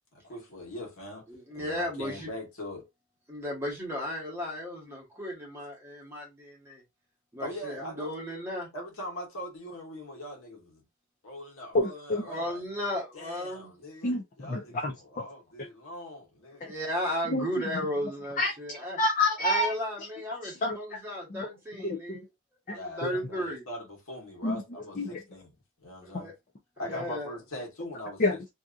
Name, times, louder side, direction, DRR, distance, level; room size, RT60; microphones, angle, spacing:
voice 1, 0.3-1.2 1.5-2.8 7.4-8.1 8.7-10.7 11.2-12.6 13.1-14.8 15.1-16.7 22.7-25.5 25.8-26.3 26.8-28.2, left 1 dB, 80° left, 1.2 m, -41 dB
voice 2, 1.3-2.3 3.3-6.8 7.3-8.7 12.3-13.7 16.6-19.0 19.4-22.3 22.7-23.6 26.0-26.3 26.8-27.4, equal, 10° right, 1.1 m, -35 dB
voice 3, 11.7-12.2 14.0-15.2 16.6-16.7 17.3-17.5 18.4-19.7 20.4-20.8 21.3-21.5 21.8-22.2 22.7-22.8 23.0-23.1 24.4-24.6 24.9-25.2 26.1-26.2 28.2-28.5, left 2 dB, 35° left, 0.5 m, -29 dB
2.7 x 2.4 x 2.4 m
head